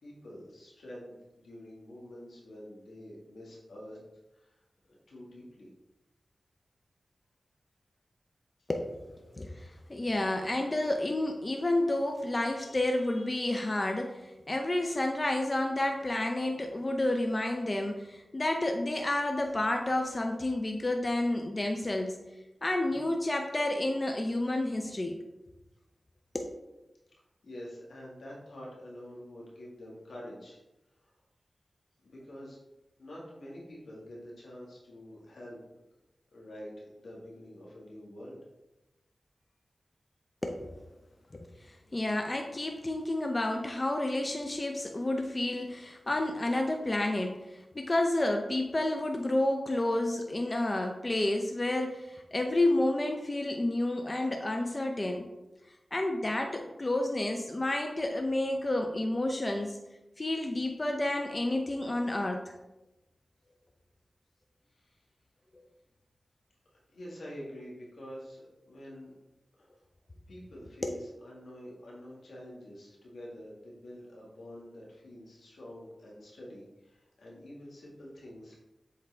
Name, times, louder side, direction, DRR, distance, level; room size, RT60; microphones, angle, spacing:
voice 1, 0.0-1.1 1.4-4.0 4.3-4.5 4.9-5.7 27.4-30.6 32.0-32.6 33.0-35.6 36.3-38.4 64.7-65.0 66.9-69.1 69.6-69.7 70.3-78.6, equal, 90° left, -4 dB, 1.8 m, -47 dB
voice 2, 8.7-22.2 22.6-25.2 26.3-26.5 40.4-40.8 41.3-55.3 55.9-59.8 60.2-62.4 65.5-65.6 70.8-70.9, left 1 dB, 40° left, 3 dB, 0.6 m, -30 dB
7.8 x 3.6 x 3.4 m, 1.0 s
cardioid pair, 45°, 0 cm